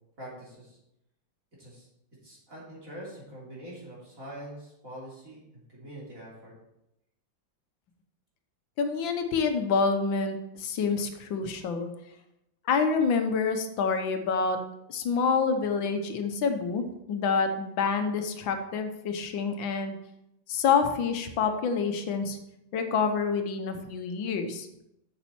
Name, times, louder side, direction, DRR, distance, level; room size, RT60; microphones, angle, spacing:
voice 1, 0.2-0.8 1.6-1.9 2.2-5.4 5.7-6.5, right 1 dB, 45° right, -6 dB, 3.6 m, -44 dB
voice 2, 8.8-11.9 12.7-14.6 14.9-20.0 20.5-22.4 22.7-24.7, left 5 dB, 85° left, 6 dB, 1.6 m, -27 dB
7.3 x 7.0 x 4.4 m, 0.84 s
omnidirectional pair, 2.1 m